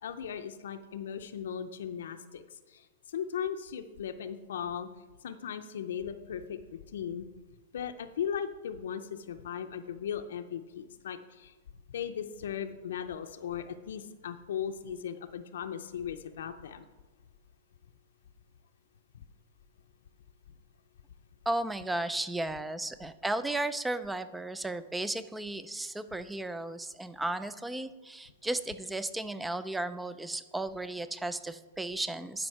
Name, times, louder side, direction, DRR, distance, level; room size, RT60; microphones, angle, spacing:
voice 1, 0.0-4.9 5.2-7.3 7.7-11.5 11.9-16.9 19.1-19.2, left 8 dB, 80° left, 7 dB, 0.5 m, -37 dB
voice 2, 21.5-32.5, right 2 dB, 5° right, 13 dB, 0.3 m, -34 dB
10.5 x 5.3 x 4.6 m, 1.2 s
hypercardioid pair, 150°, 0 cm